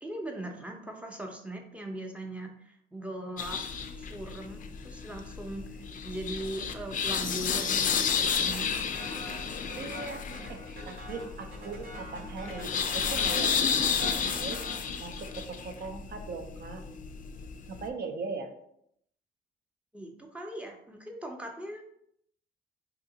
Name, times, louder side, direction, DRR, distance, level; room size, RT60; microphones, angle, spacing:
voice 1, 0.0-3.6 4.0-8.7 19.9-21.8, right 1 dB, 5° right, 1 dB, 0.6 m, -40 dB
sound 1, 3.4-17.9, left 6 dB, 40° left, 0.4 m, -32 dB
sound 2, 8.9-15.6, equal, 75° right, 1.1 m, -46 dB
voice 2, 9.7-14.6 15.0-16.8 17.7-18.6, right 4 dB, 55° right, 6 dB, 0.6 m, -40 dB
2.8 x 2.6 x 3.8 m, 0.72 s
cardioid pair, 90°, 20 cm